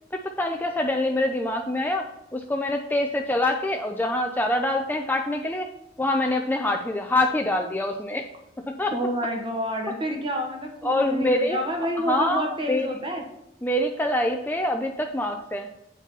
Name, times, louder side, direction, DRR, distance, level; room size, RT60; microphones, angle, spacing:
voice 1, 0.1-2.1 2.3-5.7 6.0-8.3 8.6-8.9 10.8-11.6 12.1-12.9 13.6-15.7, left 1 dB, 10° left, 3 dB, 0.5 m, -25 dB
voice 2, 8.9-13.2, equal, 25° right, 2 dB, 1.6 m, -28 dB
8.3 x 4.9 x 5.5 m, 0.88 s
head